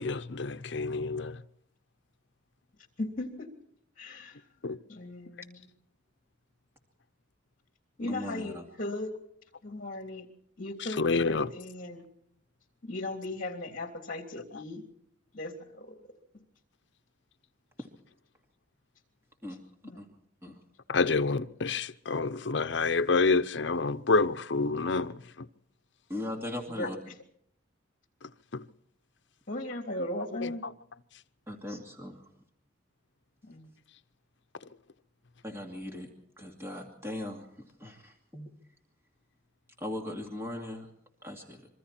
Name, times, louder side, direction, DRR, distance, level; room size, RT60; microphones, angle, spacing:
voice 1, 0.0-1.4 4.6-4.8 11.0-11.5 20.9-25.5 28.5-28.7 30.4-30.5, left 4 dB, 60° left, 0.7 m, -28 dB
voice 2, 3.0-3.5 4.0-4.4 4.9-5.7 8.0-9.1 9.6-10.3 10.6-12.0 12.9-14.8 15.3-15.9 19.8-20.0 26.7-26.9 29.5-30.6 33.5-33.7, left 1 dB, 40° left, 3.3 m, -37 dB
voice 3, 8.0-8.7 19.4-19.6 20.0-20.1 20.4-20.6 26.1-27.0 31.5-32.2 35.4-36.1 36.4-37.5 37.8-38.5 39.8-40.9 41.2-41.6, left 1 dB, 10° right, 2.5 m, -38 dB
26.0 x 23.0 x 4.4 m
head